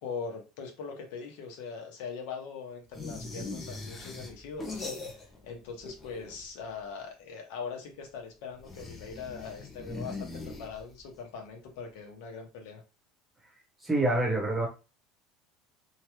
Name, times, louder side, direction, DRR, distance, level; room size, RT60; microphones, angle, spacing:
voice 1, 0.0-10.3 10.6-12.8, left 5 dB, 70° left, 1.0 m, -41 dB
sound 1, 2.9-5.5 5.8-6.6 8.6-11.1, left 3 dB, 15° left, 0.5 m, -41 dB
voice 2, 13.8-14.7, right 2 dB, 10° right, 1.0 m, -26 dB
3.0 x 2.3 x 3.0 m
cardioid pair, 165°, 0 cm